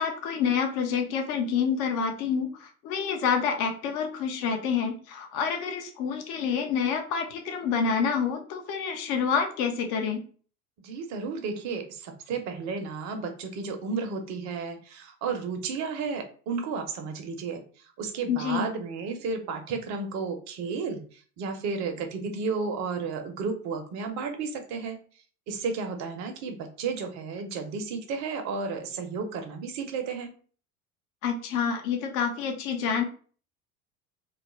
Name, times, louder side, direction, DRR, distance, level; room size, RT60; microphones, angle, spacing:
voice 1, 0.0-10.2 18.3-18.7 31.2-33.0, left 6 dB, 45° left, 4 dB, 0.6 m, -28 dB
voice 2, 10.8-25.0 25.5-30.3, right 5 dB, 40° right, 5 dB, 0.6 m, -33 dB
2.3 x 2.0 x 3.0 m, 0.42 s
hypercardioid pair, 75°, 46 cm